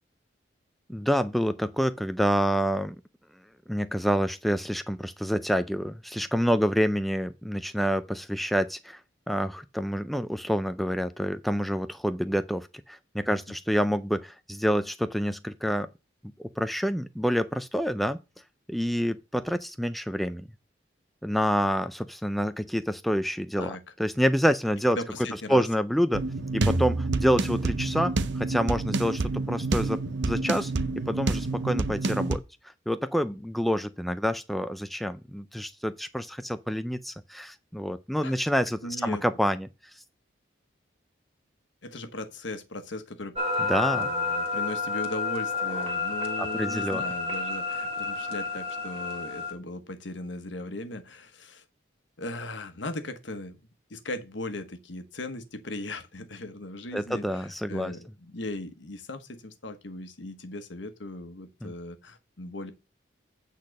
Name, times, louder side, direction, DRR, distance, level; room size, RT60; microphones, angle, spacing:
voice 1, 0.9-3.0 3.7-9.0 9.3-15.9 16.4-18.2 18.7-20.5 21.2-23.7 24.0-25.0 25.5-26.2 26.5-30.7 31.1-32.4 32.9-39.7 43.7-44.1 46.4-47.0 56.9-57.9 61.6-61.7, equal, ahead, 0.3 m, -27 dB
voice 2, 24.9-25.7 38.2-38.4 38.8-39.2 41.8-43.4 43.9-51.6 52.2-53.6 53.9-62.7, left 2 dB, 80° left, 1.2 m, -38 dB
sound 1, 26.1-32.4, right 3 dB, 70° right, 0.6 m, -28 dB
sound 2, 43.4-49.5, left 4 dB, 30° right, 1.8 m, -30 dB
8.5 x 4.1 x 6.3 m
head